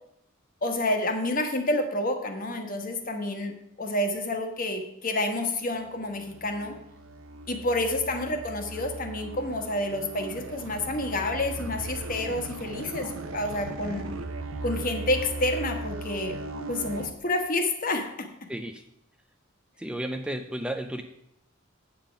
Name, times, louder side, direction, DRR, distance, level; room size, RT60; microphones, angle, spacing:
voice 1, 0.6-3.5 3.8-6.8 7.5-14.1 14.6-16.4 16.7-18.3, left 1 dB, 45° left, 5 dB, 1.3 m, -29 dB
sound 1, 5.7-17.1, right 2 dB, 85° right, 0.8 m, -38 dB
voice 2, 18.5-18.8 19.8-21.0, right 1 dB, 5° right, 6 dB, 0.4 m, -33 dB
9.0 x 7.2 x 5.1 m, 0.78 s
head